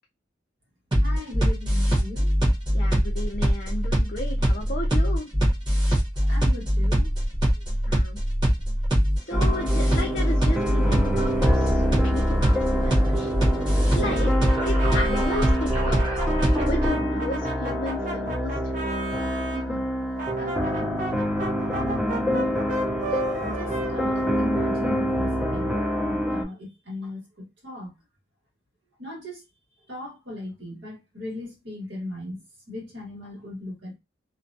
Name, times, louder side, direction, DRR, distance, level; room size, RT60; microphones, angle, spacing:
sound 1, 0.9-16.9, equal, 25° right, 1.0 m, -23 dB
voice 1, 1.0-2.5 6.2-7.1 7.6-7.7 14.0-14.3 19.5-19.8 20.4-21.1 21.7-22.6 23.1-27.9 29.0-29.4 29.9-32.4 32.7-34.0, left 2 dB, 75° right, 1.4 m, -37 dB
voice 2, 2.7-5.3 7.9-8.2 9.2-14.3 14.6-18.7, left 2 dB, 50° left, 0.5 m, -34 dB
sound 2, 9.3-26.4, equal, 5° right, 0.5 m, -26 dB
Brass instrument, 14.0-19.6 20.2-24.9, right 2 dB, 45° right, 0.7 m, -35 dB
2.5 x 2.2 x 2.6 m
head